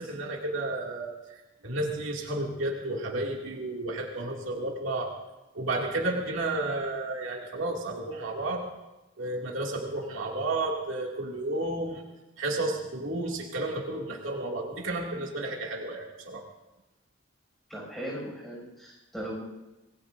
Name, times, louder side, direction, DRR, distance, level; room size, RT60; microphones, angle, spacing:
voice 1, 0.0-5.1 5.5-8.7 9.2-12.0 12.4-16.4, right 2 dB, 75° right, -1 dB, 2.5 m, -32 dB
voice 2, 17.7-19.4, equal, ahead, -4 dB, 6.7 m, -38 dB
26.5 x 20.0 x 2.7 m, 1.0 s
head